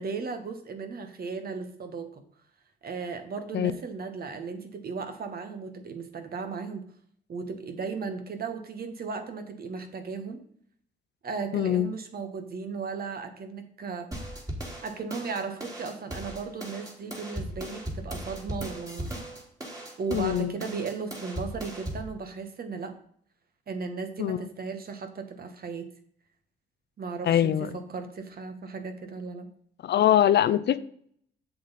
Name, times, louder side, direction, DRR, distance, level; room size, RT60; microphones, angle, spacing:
voice 1, 0.0-2.2 2.8-6.8 7.3-10.4 11.2-14.1 14.8-19.1 20.0-23.0 23.7-25.9 27.0-29.5, right 5 dB, 50° right, 8 dB, 1.4 m, -36 dB
voice 2, 11.5-11.9 20.1-20.5 24.2-24.4 27.2-27.7 29.8-30.8, left 11 dB, 60° left, 14 dB, 0.6 m, -23 dB
sound 1, 14.1-22.1, right 1 dB, 15° right, 2.6 m, -38 dB
7.7 x 7.2 x 4.2 m, 0.63 s
cardioid pair, 90°, 20 cm